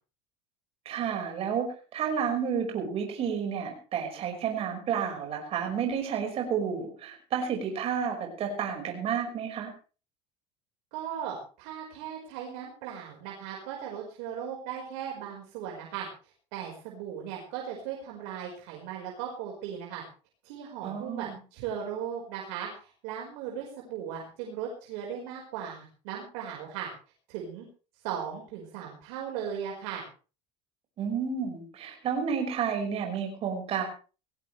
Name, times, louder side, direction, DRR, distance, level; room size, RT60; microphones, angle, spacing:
voice 1, 0.9-9.7 20.8-21.3 31.0-33.8, right 7 dB, 45° right, 2 dB, 5.5 m, -31 dB
voice 2, 10.9-16.1 16.5-20.0 20.4-26.9 27.3-27.7 28.0-30.0, right 8 dB, 75° right, 0 dB, 5.0 m, -37 dB
19.5 x 17.0 x 3.4 m, 0.36 s
supercardioid pair, 115°, 14 cm